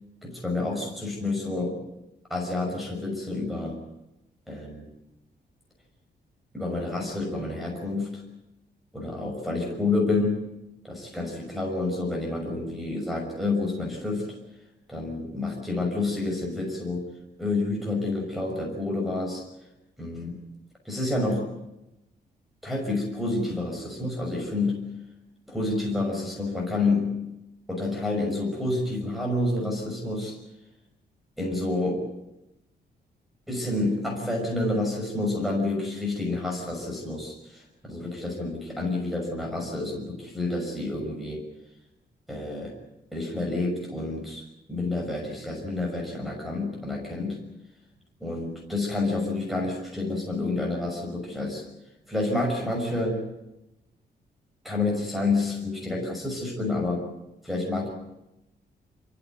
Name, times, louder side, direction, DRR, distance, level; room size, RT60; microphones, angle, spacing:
voice 1, 0.2-1.8 2.3-3.8 4.5-4.9 6.5-8.2 8.9-10.5 10.8-14.3 14.9-17.1 17.4-19.4 20.0-20.4 20.8-21.5 22.6-24.8 25.5-27.2 27.7-30.3 31.4-32.0 33.5-41.4 42.3-42.7 43.1-47.4 48.2-51.6 52.1-53.2 54.6-57.0 57.4-57.9, left 2 dB, ahead, -2 dB, 6.0 m, -29 dB
27.5 x 15.5 x 9.5 m, 0.91 s
wide cardioid pair, 165°, 17 cm